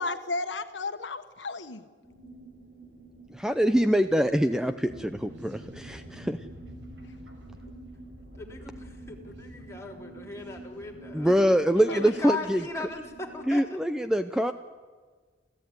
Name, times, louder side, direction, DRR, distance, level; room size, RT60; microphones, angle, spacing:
voice 1, 0.0-1.9 11.9-12.2, left 3 dB, 90° left, 1.3 m, -34 dB
sound 1, 2.0-13.5, right 2 dB, 70° right, 6.7 m, -49 dB
voice 2, 3.3-6.4 11.1-12.6 13.5-14.5, equal, 5° right, 0.6 m, -24 dB
sound 2, 4.9-11.5, equal, 85° right, 5.3 m, -48 dB
voice 3, 8.3-11.4 11.9-13.6, left 2 dB, 15° left, 3.4 m, -38 dB
28.0 x 15.0 x 9.5 m
head